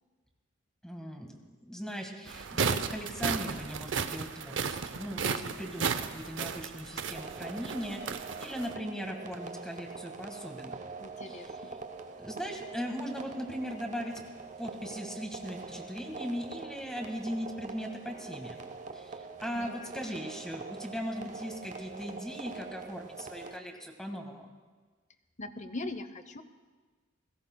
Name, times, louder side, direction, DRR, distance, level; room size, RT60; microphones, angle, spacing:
voice 1, 0.8-1.4 1.6-10.9 11.2-11.8 12.2-14.2 14.6-18.6 18.9-24.5, equal, 5° left, 3 dB, 1.6 m, -39 dB
sound 1, 2.3-8.7, right 5 dB, 70° right, 0.6 m, -34 dB
sound 2, 7.1-23.6, right 4 dB, 40° right, 0.8 m, -44 dB
voice 2, 11.0-11.7 16.5-16.6 19.6-19.9 25.4-26.4, left 2 dB, 40° left, 11 dB, 0.7 m, -41 dB
29.5 x 16.5 x 2.2 m, 1.4 s
head